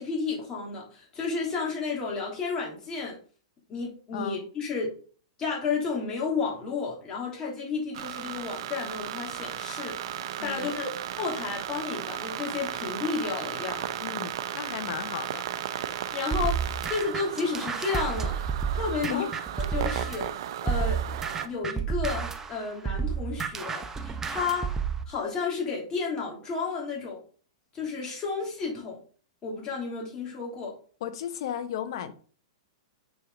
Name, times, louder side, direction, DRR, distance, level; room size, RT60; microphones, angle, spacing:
voice 1, 0.0-3.1 3.7-4.9 5.4-9.9 10.4-10.9 11.2-14.0 15.7-16.6 16.9-18.4 18.7-19.3 19.6-21.0 21.4-24.7 25.1-27.2 27.7-29.0 29.4-30.7, left 5 dB, 25° left, 3.1 m, -32 dB
sound 1, 7.9-21.5, right 10 dB, 60° right, 0.7 m, -35 dB
voice 2, 10.4-10.7 14.0-15.4 19.0-19.3 31.0-32.1, left 9 dB, 60° left, 0.9 m, -34 dB
sound 2, 16.3-20.3 20.7-25.0, right 6 dB, 15° right, 0.8 m, -30 dB
6.8 x 4.7 x 3.8 m
hypercardioid pair, 115°, 3 cm